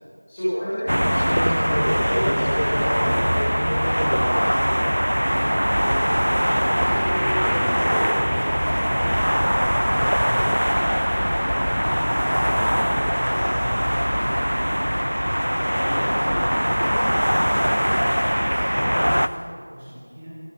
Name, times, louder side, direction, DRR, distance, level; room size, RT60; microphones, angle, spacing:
voice 1, 0.3-4.9 15.7-16.4, equal, 10° left, -14 dB, 5.0 m, -28 dB
sound 1, 0.9-19.3, equal, 90° right, 0.8 m, -21 dB
voice 2, 6.0-6.5 6.8-11.1 11.4-15.3 15.9-16.5 16.8-20.3, equal, 5° right, -12 dB, 2.5 m, -41 dB
29.5 x 13.5 x 3.6 m, 2.2 s
figure-of-eight pair, 180°, 0 cm